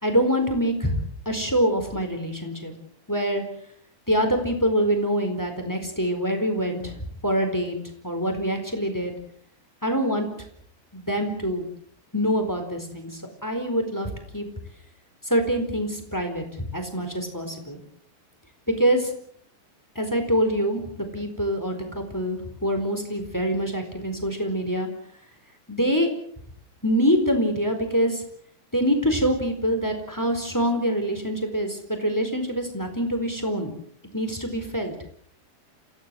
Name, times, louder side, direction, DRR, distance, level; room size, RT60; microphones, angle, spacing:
voice 1, 0.0-2.7 3.1-3.4 4.1-7.8 8.0-9.1 9.8-10.3 10.9-11.7 12.1-14.5 15.2-17.8 18.8-19.1 19.9-20.8 21.1-24.9 25.7-26.1 26.8-28.2 28.7-33.7 34.1-34.9, equal, 5° left, 6 dB, 3.8 m, -25 dB
28.0 x 17.0 x 7.7 m, 0.63 s
omnidirectional pair, 4.9 m